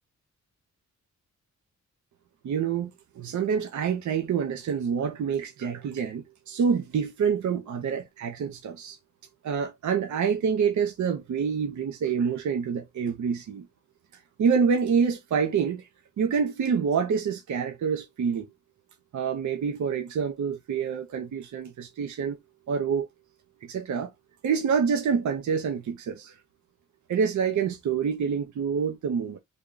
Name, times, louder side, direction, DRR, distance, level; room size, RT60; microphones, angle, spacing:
voice 1, 2.4-9.0 9.4-13.7 14.4-15.8 16.2-18.5 19.1-22.4 22.7-23.1 23.6-24.1 24.4-26.3 27.1-29.4, right 6 dB, 65° right, 0.6 m, -27 dB
3.4 x 2.2 x 3.7 m
wide cardioid pair, 145°, 31 cm